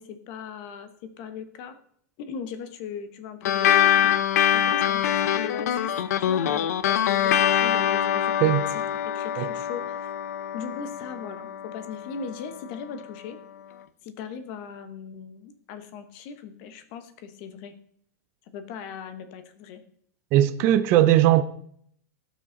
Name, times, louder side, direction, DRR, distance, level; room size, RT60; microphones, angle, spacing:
voice 1, 0.0-1.8 2.2-4.1 4.5-5.9 6.2-8.5 9.1-10.1 10.5-13.4 14.0-17.7 18.5-19.8, left 6 dB, 35° left, 1.0 m, -38 dB
sound 1, 3.4-12.3, left 10 dB, 70° left, 0.7 m, -24 dB
voice 2, 20.3-21.4, right 13 dB, 25° right, 0.4 m, -19 dB
17.0 x 6.2 x 3.9 m
supercardioid pair, 180°, 9 cm